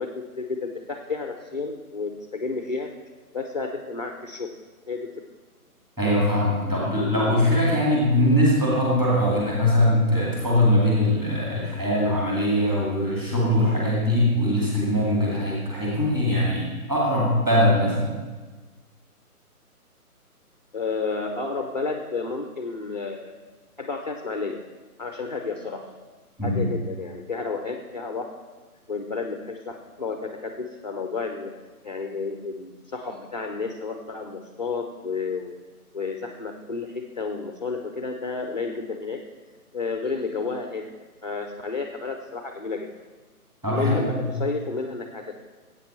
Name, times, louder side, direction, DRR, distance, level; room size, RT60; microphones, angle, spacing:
voice 1, 0.0-2.9 3.3-4.5 4.9-5.1 20.7-23.3 23.8-24.6 25.0-25.9 26.4-28.3 28.9-31.5 31.8-35.5 35.9-39.2 39.7-42.9 43.7-45.4, left 4 dB, 30° left, 4 dB, 0.6 m, -31 dB
voice 2, 6.0-18.1 26.4-26.6 43.6-44.3, left 1 dB, 10° right, -6 dB, 2.2 m, -21 dB
15.5 x 8.3 x 4.4 m, 1.3 s
figure-of-eight pair, 155°, 45 cm